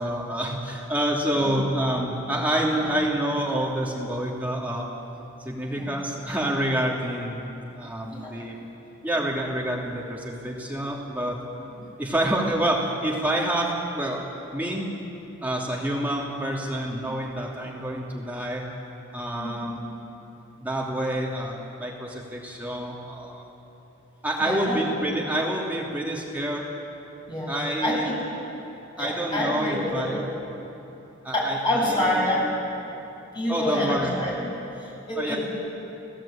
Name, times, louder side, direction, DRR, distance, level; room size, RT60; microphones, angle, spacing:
voice 1, 0.0-4.9 5.4-7.5 7.7-8.6 9.0-11.4 12.0-14.2 14.5-14.9 15.4-18.6 19.1-19.8 20.6-23.4 24.2-26.6 27.5-28.1 29.0-30.3 31.2-32.4 33.5-34.1 35.2-35.4, right 1 dB, 5° right, -4 dB, 2.8 m, -28 dB
voice 2, 19.4-19.7 24.4-24.8 27.3-27.5 27.8-28.2 29.0-30.3 31.3-32.4 33.3-34.5 34.8-35.4, left 1 dB, 20° left, -5 dB, 7.9 m, -27 dB
30.0 x 17.5 x 8.9 m, 3.0 s
head